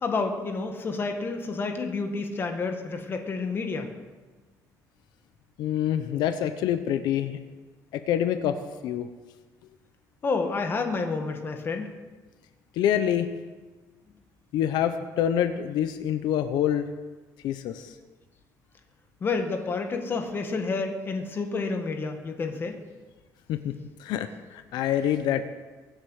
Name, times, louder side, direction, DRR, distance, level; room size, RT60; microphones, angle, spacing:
voice 1, 0.0-3.9 10.2-11.9 19.2-22.8, left 4 dB, 30° left, 5 dB, 1.8 m, -29 dB
voice 2, 5.6-7.4 7.9-8.6 8.8-9.1 12.7-13.3 14.5-16.9 17.4-17.9 23.5-23.7 24.0-25.5, left 10 dB, 80° left, 9 dB, 0.9 m, -26 dB
23.0 x 8.1 x 6.5 m, 1.3 s
cardioid pair, 155°, 7 cm